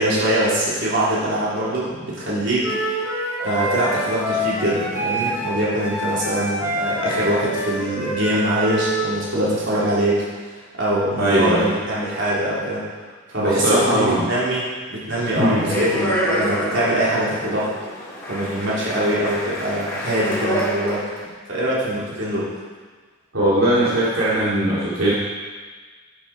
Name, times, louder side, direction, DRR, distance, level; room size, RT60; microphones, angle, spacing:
voice 1, 0.0-2.7 3.4-10.2 10.8-12.8 13.3-17.7 18.3-21.1 21.5-22.5, right 1 dB, 60° right, -7 dB, 3.6 m, -23 dB
Wind instrument woodwind instrument, 2.6-9.0, right 1 dB, 15° right, 2.4 m, -26 dB
voice 2, 11.2-11.7 13.4-14.2 15.4-15.7 23.3-25.1, right 1 dB, 80° right, -9 dB, 2.5 m, -19 dB
Speech, 15.4-21.2, equal, 15° left, 3.5 m, -27 dB
11.0 x 10.5 x 4.4 m, 1.4 s
head